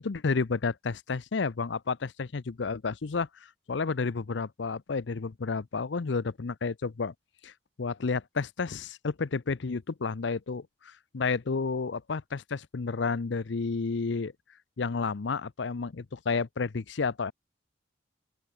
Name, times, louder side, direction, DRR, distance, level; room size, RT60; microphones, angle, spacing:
voice 1, 0.0-7.1 7.4-7.5 7.8-14.3 14.8-17.3, left 4 dB, 65° left, 0.6 m, -31 dB
open air
head